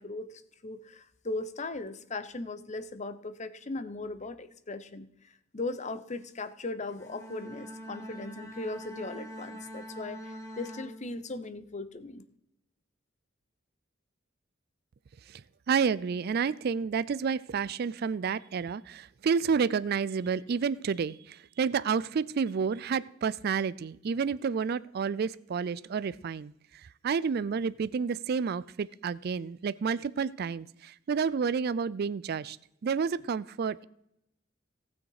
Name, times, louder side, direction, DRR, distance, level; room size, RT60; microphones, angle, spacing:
voice 1, 0.0-5.1 5.5-12.2, left 2 dB, 40° left, 12 dB, 0.8 m, -38 dB
Bowed string instrument, 6.9-11.6, equal, 15° left, 2.3 m, -44 dB
voice 2, 15.7-32.6 32.8-33.8, right 6 dB, 55° right, 17 dB, 0.4 m, -30 dB
18.0 x 6.4 x 4.8 m, 0.79 s
head